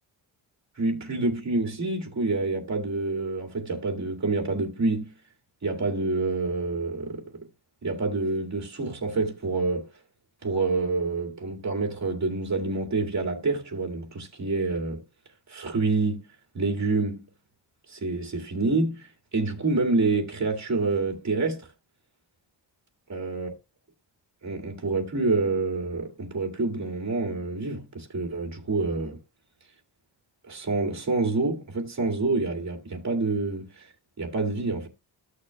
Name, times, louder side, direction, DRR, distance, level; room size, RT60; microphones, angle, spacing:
voice 1, 0.8-5.1 5.6-7.5 7.8-9.9 10.4-15.0 15.5-16.2 16.5-17.3 17.9-21.7 23.1-23.5 24.4-29.2 30.5-33.9 34.2-34.9, right 3 dB, 40° right, 2.2 m, -27 dB
14.0 x 6.4 x 2.3 m
wide cardioid pair, 125°, 44 cm